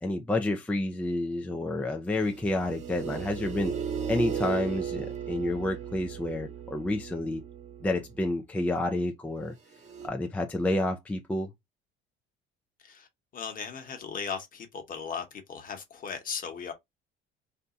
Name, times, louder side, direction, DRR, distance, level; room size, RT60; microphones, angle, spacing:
voice 1, 0.0-3.8 4.1-7.4 7.8-9.5 10.0-11.5, left 1 dB, 5° left, 0.4 m, -29 dB
sound 1, 2.1-8.1 9.8-10.1, right 7 dB, 35° right, 0.8 m, -36 dB
voice 2, 13.3-16.7, left 6 dB, 40° left, 1.1 m, -37 dB
2.7 x 2.2 x 3.8 m
cardioid pair, 110°, 21 cm